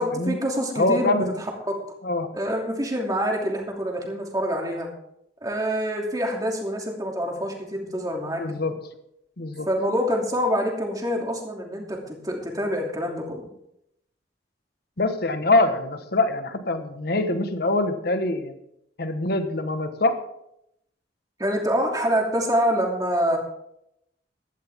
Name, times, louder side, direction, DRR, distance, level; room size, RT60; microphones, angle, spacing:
voice 1, 0.0-1.8 2.3-4.9 5.4-8.4 9.7-13.4 21.4-23.4, equal, 20° right, 0 dB, 2.8 m, -26 dB
voice 2, 0.8-1.3 2.0-2.3 8.4-8.8 9.4-9.7 15.0-18.5 19.0-20.2, left 2 dB, 60° left, 8 dB, 1.4 m, -24 dB
15.5 x 12.0 x 3.6 m, 0.78 s
head